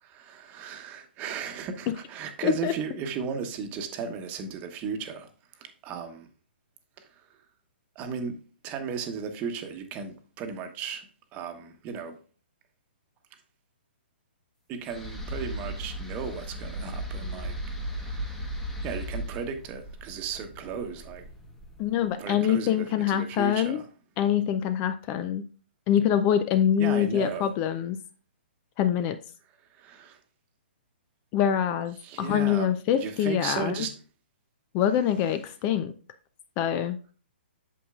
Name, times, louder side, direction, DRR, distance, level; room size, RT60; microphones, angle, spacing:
voice 1, 0.0-6.3 7.0-7.1 7.9-8.4 8.6-11.1 11.3-12.2 14.7-17.6 17.9-18.5 18.8-21.2 22.2-23.8 26.8-27.5 29.7-30.2 32.0-32.7 32.9-33.9, right 6 dB, 25° right, 1.0 m, -35 dB
voice 2, 2.4-2.7 21.8-23.8 24.2-25.5 25.9-28.0 28.8-29.2 31.3-33.7 34.7-35.9 36.6-37.0, left 10 dB, 25° left, 0.4 m, -25 dB
sound 1, 14.9-22.0, right 1 dB, 5° left, 1.1 m, -36 dB
8.3 x 7.1 x 2.4 m
hypercardioid pair, 135°, 6 cm